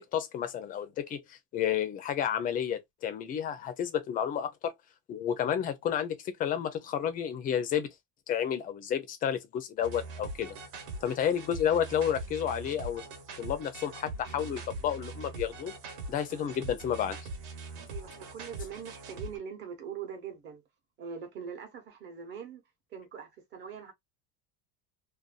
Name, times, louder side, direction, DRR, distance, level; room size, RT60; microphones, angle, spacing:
voice 1, 0.0-4.7 5.1-7.9 8.3-10.5 11.0-13.0 13.4-15.7 16.1-17.2, left 9 dB, 25° left, 0.4 m, -31 dB
sound 1, 9.8-19.4, right 2 dB, 60° right, 1.1 m, -42 dB
voice 2, 17.9-20.6 21.0-22.6 22.9-23.9, right 7 dB, 35° right, 0.9 m, -42 dB
2.6 x 2.2 x 2.3 m
cardioid pair, 160°, 33 cm